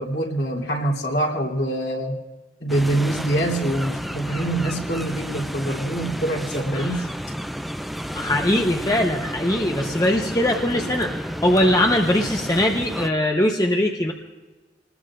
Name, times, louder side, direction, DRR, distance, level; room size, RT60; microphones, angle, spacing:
voice 1, 0.0-2.2 2.6-7.1, right 1 dB, 60° left, -1 dB, 3.1 m, -24 dB
sound 1, 2.7-13.1, equal, ahead, 0.4 m, -31 dB
voice 2, 8.1-11.1 11.4-14.1, left 1 dB, 20° left, 2 dB, 0.9 m, -21 dB
27.5 x 20.5 x 2.5 m, 1.2 s
head